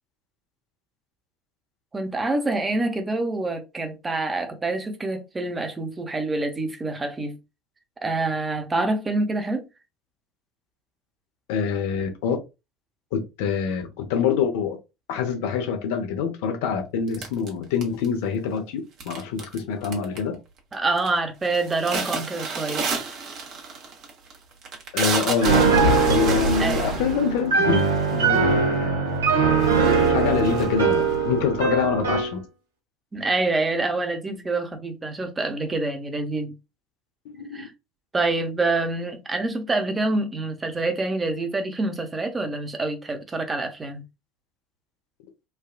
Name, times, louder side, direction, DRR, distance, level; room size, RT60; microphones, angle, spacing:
voice 1, 1.9-7.4 8.0-9.6 20.7-22.9 26.6-26.9 33.1-36.5 37.5-37.7 38.1-44.0, right 2 dB, 20° right, 0.8 m, -26 dB
voice 2, 11.5-12.4 13.1-14.8 15.1-20.4 24.9-25.6 26.1-27.8 28.1-29.2 30.1-32.4 37.3-37.7, left 6 dB, 65° left, 0.7 m, -25 dB
sound 1, 17.1-18.2 19.0-19.6 19.8-20.3 20.7-21.1 21.4-28.5 29.2-29.3 29.5-31.1, right 3 dB, 50° right, 0.9 m, -28 dB
Piano, 25.4-32.3, right 5 dB, 85° right, 0.8 m, -21 dB
3.4 x 2.3 x 2.3 m
hypercardioid pair, 70°, 0 cm